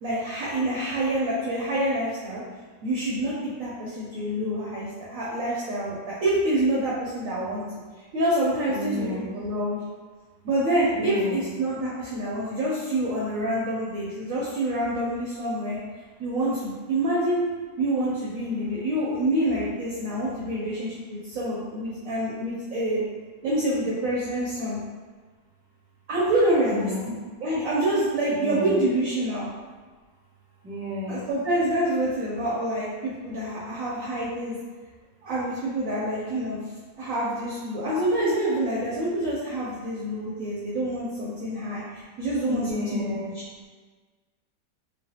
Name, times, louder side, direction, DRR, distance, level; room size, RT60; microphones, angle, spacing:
voice 1, 0.0-2.4 2.8-7.8 8.1-9.8 10.4-15.8 16.2-17.4 17.8-23.0 23.4-24.8 26.1-26.9 27.4-29.5 31.1-34.6 35.2-36.6 37.0-41.8 42.2-43.2, right 1 dB, 70° right, -6 dB, 0.8 m, -27 dB
voice 2, 8.7-9.3 10.9-11.5 26.6-27.2 28.3-28.8 30.6-31.3 42.5-43.3, left 1 dB, 10° right, -10 dB, 0.8 m, -32 dB
3.1 x 2.1 x 2.7 m, 1.4 s
omnidirectional pair, 1.8 m